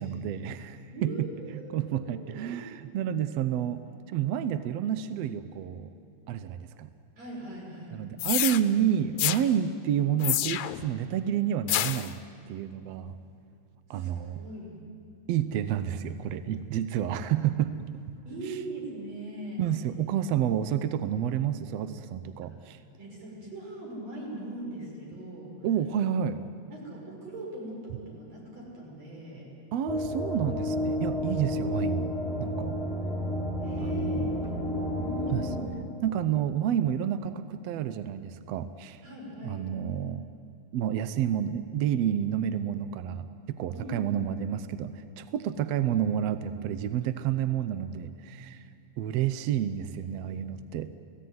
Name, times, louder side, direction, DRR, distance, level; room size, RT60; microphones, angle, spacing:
voice 1, 0.0-1.3 1.7-3.8 4.1-5.9 6.3-6.9 7.9-12.2 12.5-13.2 13.9-14.4 15.3-17.8 19.6-22.8 25.6-26.4 29.7-32.1 32.4-32.8 33.8-34.4 35.3-35.5 36.0-39.0 39.4-40.3 40.7-48.6 49.0-50.9, right 10 dB, 75° right, 12 dB, 1.5 m, -29 dB
voice 2, 0.9-2.7 7.2-8.0 13.9-14.8 18.3-19.7 23.0-25.7 26.7-29.5 33.6-34.5 35.0-35.6 39.0-39.6 43.7-44.2, right 1 dB, 55° right, -2 dB, 7.3 m, -40 dB
sound 1, 8.2-8.6 9.2-9.4 10.2-10.8 11.7-12.1, left 14 dB, 75° left, 2.0 m, -27 dB
sound 2, 29.9-35.6, left 1 dB, ahead, 4.9 m, -31 dB
sound 3, 34.4-37.7, right 2 dB, 35° right, 2.2 m, -46 dB
30.0 x 17.5 x 9.5 m, 2.4 s
omnidirectional pair, 3.7 m